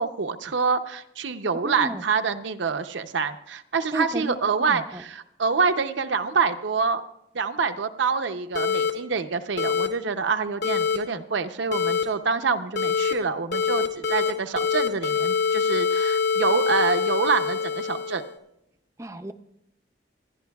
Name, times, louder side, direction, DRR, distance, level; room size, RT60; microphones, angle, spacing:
voice 1, 0.0-7.0 7.3-18.2, right 5 dB, 75° right, 8 dB, 0.7 m, -26 dB
voice 2, 1.6-2.0 3.9-4.4 4.7-4.8 19.0-19.3, right 1 dB, 15° right, 8 dB, 0.5 m, -32 dB
sound 1, 8.6-8.9 9.6-9.9 10.6-11.0 11.7-12.0 12.8-13.1 13.5-14.3 14.6-18.3, left 5 dB, 70° left, 2.1 m, -24 dB
27.5 x 11.0 x 2.3 m, 0.81 s
head